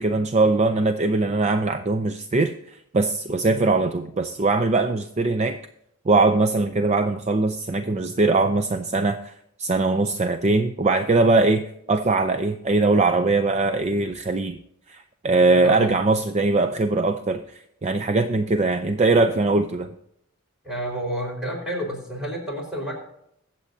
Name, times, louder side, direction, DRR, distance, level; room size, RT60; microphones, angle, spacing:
voice 1, 0.0-2.5 2.9-5.6 6.1-9.3 9.6-11.6 11.9-14.6 14.9-19.9, right 3 dB, 30° right, 8 dB, 0.5 m, -21 dB
voice 2, 15.6-15.9 20.6-23.0, right 1 dB, 5° right, -1 dB, 4.4 m, -30 dB
23.0 x 7.6 x 2.7 m, 0.76 s
head